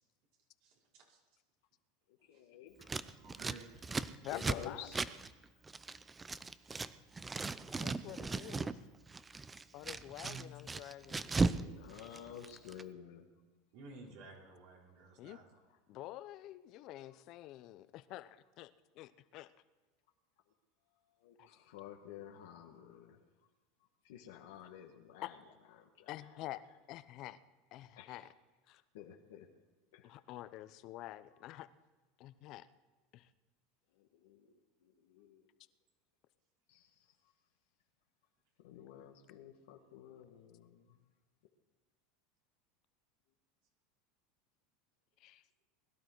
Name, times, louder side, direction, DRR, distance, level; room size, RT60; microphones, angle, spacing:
voice 1, 0.6-1.2 2.3-2.4 3.2-3.7 10.2-10.5 13.7-15.5, right 4 dB, 65° right, -3 dB, 4.9 m, -53 dB
voice 2, 2.3-2.9 4.3-5.0 9.7-9.8 11.6-13.3 21.2-23.2 24.0-25.4 25.8-26.2 28.0-28.2 28.9-29.5 29.9-30.1 34.0-34.5 34.8-35.5 36.7-36.9 38.6-41.0, left 9 dB, 80° left, 1 dB, 1.5 m, -51 dB
Scissors, 2.8-6.9 7.2-8.8 9.1-11.6 11.9-12.8, right 4 dB, 15° right, 0.5 m, -37 dB
voice 3, 4.2-4.9 7.8-8.8 9.7-11.3 15.2-15.4 15.9-19.5 21.4-21.5 25.2-25.3 26.1-26.6 26.9-27.4 27.7-28.3 28.7-28.8 30.0-31.7 32.2-32.7 33.1-33.3 45.2-45.4, left 15 dB, 50° left, 14 dB, 0.7 m, -48 dB
21.0 x 12.0 x 4.7 m, 1.3 s
supercardioid pair, 125°, 0 cm